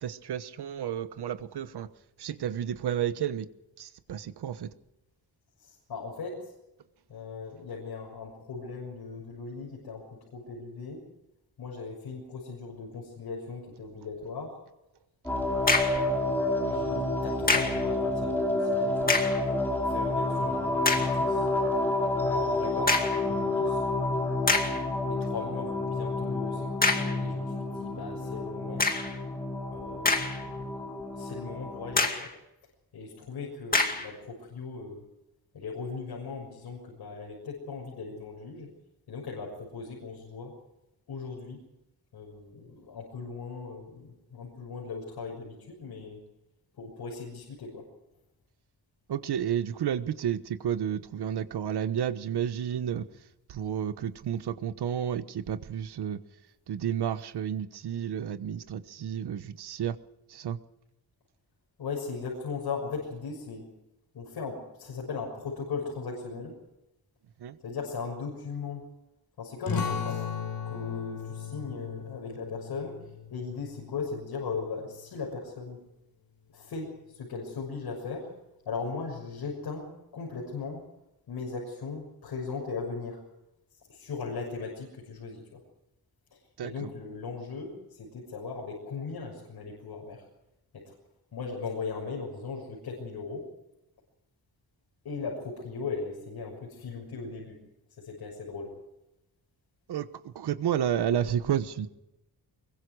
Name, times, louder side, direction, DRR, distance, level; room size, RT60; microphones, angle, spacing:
voice 1, 0.0-1.9 2.2-3.5 3.8-4.7 49.1-53.0 53.5-56.2 56.7-60.0 60.3-60.6 67.4-67.6 86.6-86.9 99.9-101.9, right 9 dB, 85° right, 12 dB, 1.3 m, -31 dB
voice 2, 5.6-6.5 7.1-10.0 10.3-11.0 11.6-14.6 15.4-15.7 16.5-19.2 19.8-21.5 22.2-23.8 24.6-28.8 29.7-32.3 32.9-35.0 35.5-38.7 39.1-40.5 41.1-41.6 42.1-46.2 46.8-47.8 61.8-63.6 64.1-66.5 67.6-68.8 69.4-70.2 70.6-73.0 73.3-75.8 76.5-78.3 78.6-80.8 81.3-83.2 83.9-85.6 86.6-90.2 90.7-90.9 91.3-93.5 95.0-97.6 98.0-98.7, left 4 dB, 80° left, -2 dB, 6.5 m, -38 dB
sound 1, 15.3-32.1, left 2 dB, 5° left, 5.1 m, -29 dB
sound 2, 15.4-16.1 17.5-17.9 19.0-19.5 20.1-20.2 20.8-21.2 22.9-23.3 23.9-24.0 24.5-24.8 26.8-27.2 28.8-29.2 29.8-30.6 31.0-31.1 32.0-32.3 33.7-34.1, left 3 dB, 20° left, 2.3 m, -26 dB
sound 3, 69.7-74.9, left 6 dB, 60° left, 4.0 m, -36 dB
24.5 x 23.0 x 4.9 m, 0.92 s
wide cardioid pair, 180°, 38 cm